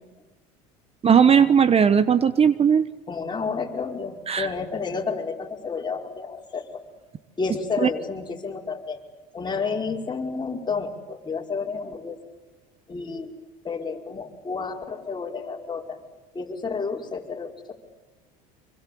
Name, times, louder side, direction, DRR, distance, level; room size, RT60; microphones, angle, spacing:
voice 1, 1.0-2.9 4.3-4.5 7.8-7.9, right 7 dB, 30° right, 14 dB, 1.2 m, -17 dB
voice 2, 3.1-6.8 7.4-9.0 9.3-12.2 12.9-13.3 13.6-16.0 16.3-17.7, left 4 dB, 25° left, 1 dB, 5.1 m, -30 dB
26.5 x 24.0 x 8.6 m, 1.2 s
supercardioid pair, 85°, 19 cm